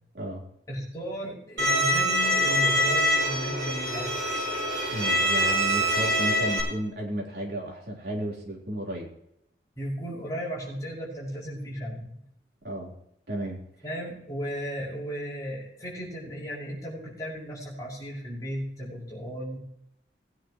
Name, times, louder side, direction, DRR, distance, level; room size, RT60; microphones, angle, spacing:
voice 1, 0.7-4.5 9.8-12.2 13.8-19.6, equal, 20° left, -6 dB, 6.1 m, -35 dB
Bowed string instrument, 1.6-6.6, equal, 75° right, 6.0 m, -24 dB
voice 2, 4.9-9.1 12.6-12.9 13.3-13.6, right 1 dB, 60° right, -2 dB, 3.8 m, -33 dB
20.5 x 10.0 x 3.1 m, 0.78 s
head